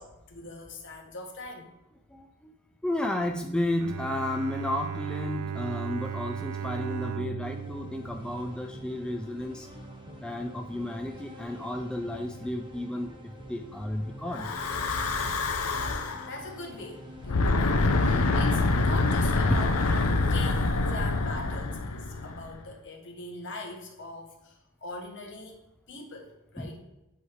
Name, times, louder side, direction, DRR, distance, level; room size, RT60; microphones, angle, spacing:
voice 1, 0.0-1.7 16.2-19.8 20.3-25.6 25.9-26.8, left 2 dB, 60° left, 2 dB, 1.2 m, -41 dB
voice 2, 2.1-2.5 2.8-9.7 10.2-14.5 19.5-19.7 26.6-26.8, left 1 dB, 5° left, 3 dB, 0.3 m, -33 dB
Bowed string instrument, 3.8-9.1, right 8 dB, 85° right, 0.5 m, -36 dB
sound 1, 7.4-21.9, equal, 25° right, 0.8 m, -47 dB
Breathing / Wind, 14.3-16.3 17.2-22.6, left 3 dB, 75° left, 0.6 m, -26 dB
7.9 x 3.3 x 4.6 m, 0.93 s
head